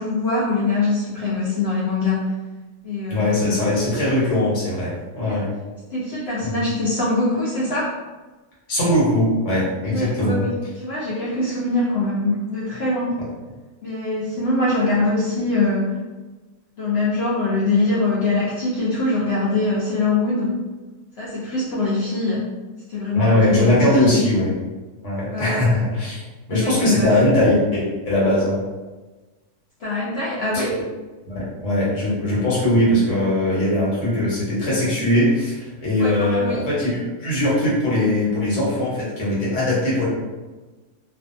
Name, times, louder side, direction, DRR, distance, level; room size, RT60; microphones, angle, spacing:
voice 1, 0.0-2.3 2.8-3.5 5.2-5.3 5.9-7.9 9.9-10.5 10.8-13.1 13.8-15.9 16.8-20.6 21.2-22.5 22.9-24.2 25.3-25.7 26.5-27.2 29.8-30.8 36.0-36.6, left 2 dB, 75° left, -8 dB, 0.5 m, -23 dB
voice 2, 3.1-5.5 6.4-6.7 8.7-10.4 23.1-24.5 25.0-26.2 26.5-28.6 31.3-40.1, left 1 dB, 55° left, -7 dB, 1.2 m, -20 dB
2.6 x 2.4 x 2.5 m, 1.2 s
omnidirectional pair, 1.7 m